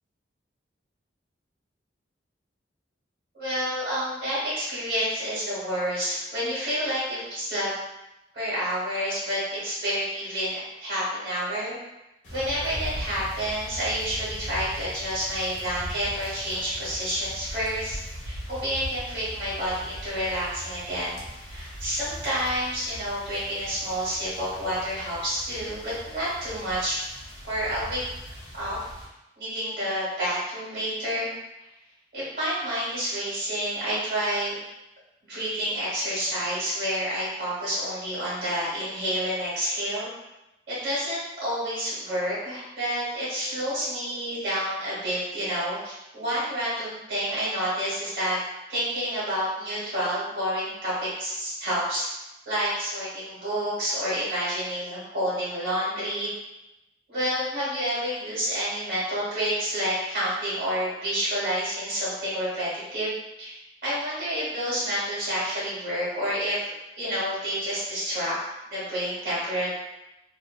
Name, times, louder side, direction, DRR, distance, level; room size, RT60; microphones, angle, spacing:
voice 1, 3.3-7.7 8.3-11.8 12.3-18.0 18.2-21.2 21.5-27.0 27.4-28.0 28.5-28.8 29.4-31.3 32.1-34.5 35.2-40.1 40.7-48.4 48.7-56.3 57.1-66.6 67.0-69.7, equal, 55° right, -9 dB, 1.2 m, -29 dB
sound 1, 12.2-29.1, equal, 75° left, 1.0 m, -40 dB
2.7 x 2.7 x 2.3 m, 0.94 s
head